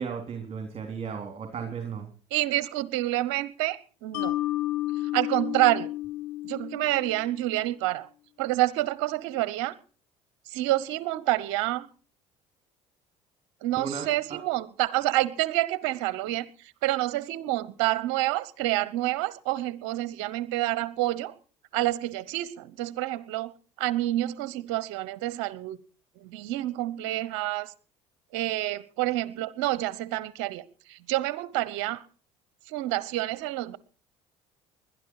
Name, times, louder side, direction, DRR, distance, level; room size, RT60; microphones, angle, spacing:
voice 1, 0.0-2.1 13.8-14.4, right 6 dB, 45° right, 5 dB, 3.7 m, -35 dB
voice 2, 2.3-4.3 5.1-5.9 6.4-8.1 8.4-9.7 10.5-11.9 13.6-16.5 16.8-21.3 21.7-23.5 23.8-25.8 26.2-27.7 28.3-32.0 32.7-33.8, right 16 dB, 75° right, 18 dB, 0.9 m, -28 dB
Mallet percussion, 4.1-7.4, left 16 dB, 75° left, 6.7 m, -31 dB
20.5 x 12.0 x 4.8 m, 0.39 s
hypercardioid pair, 70°, 15 cm